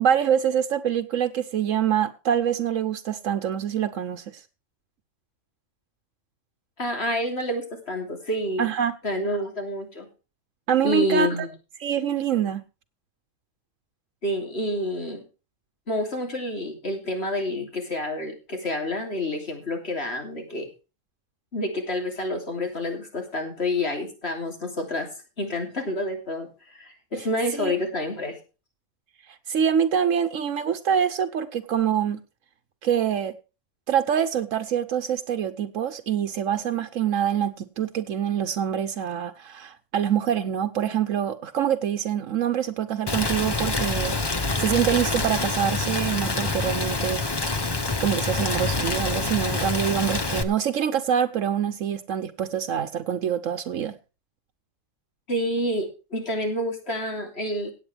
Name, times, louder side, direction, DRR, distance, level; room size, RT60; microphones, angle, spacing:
voice 1, 0.0-4.2 8.6-8.9 10.7-11.3 11.8-12.6 27.5-27.7 29.3-32.2 32.8-33.3 33.9-47.2 48.0-53.9, right 9 dB, 85° right, 1.2 m, -25 dB
voice 2, 6.8-8.7 9.0-10.1 10.8-11.5 14.2-15.2 15.9-20.7 21.5-25.1 25.4-28.4 55.3-57.7, left 1 dB, 55° left, 3.3 m, -28 dB
Rain, 43.1-50.4, left 3 dB, 20° left, 0.9 m, -26 dB
17.0 x 8.7 x 3.4 m
omnidirectional pair, 1.3 m